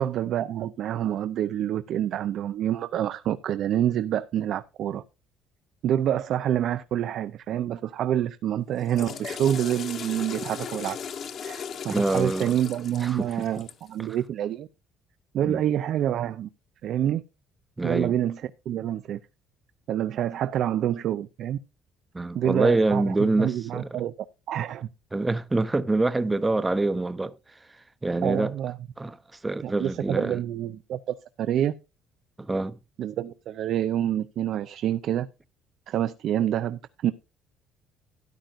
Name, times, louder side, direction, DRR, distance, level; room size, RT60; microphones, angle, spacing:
voice 1, 0.0-5.0 5.8-11.0 11.4-14.7 15.3-16.5 16.8-17.2 17.8-19.2 19.9-21.6 22.3-24.1 24.5-24.9 28.2-28.8 29.6-31.7 33.0-35.3 35.9-37.1, right 11 dB, 55° right, 0.5 m, -27 dB
Water / Toilet flush, 8.7-13.9, left 7 dB, 45° left, 1.1 m, -37 dB
voice 2, 11.9-12.5 13.0-13.3 14.0-14.1 15.4-15.6 17.8-18.1 22.1-23.9 25.1-27.3 28.0-28.5 29.0-29.2 29.4-30.4 32.4-32.8, right 2 dB, 10° right, 0.6 m, -25 dB
13.0 x 10.5 x 2.5 m
cardioid pair, 145°, 0 cm